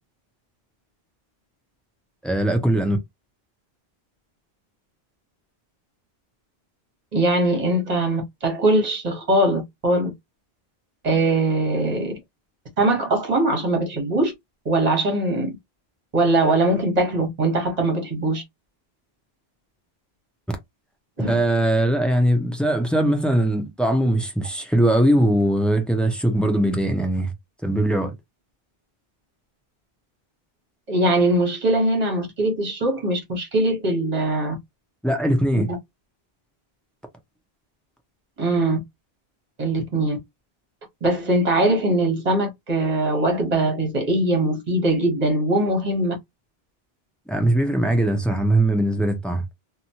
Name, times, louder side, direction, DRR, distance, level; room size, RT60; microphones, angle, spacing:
voice 1, 2.2-3.0 21.3-27.3 27.6-28.1 35.0-35.7 47.3-49.4, right 1 dB, ahead, 0.4 m, -20 dB
voice 2, 7.1-10.1 11.0-12.1 12.8-14.3 14.6-15.5 16.1-18.4 21.2-21.4 30.9-34.5 35.6-35.7 38.4-38.8 39.6-40.2 41.0-46.1, right 1 dB, 40° right, 1.2 m, -21 dB
3.0 x 2.2 x 2.7 m
omnidirectional pair, 1.0 m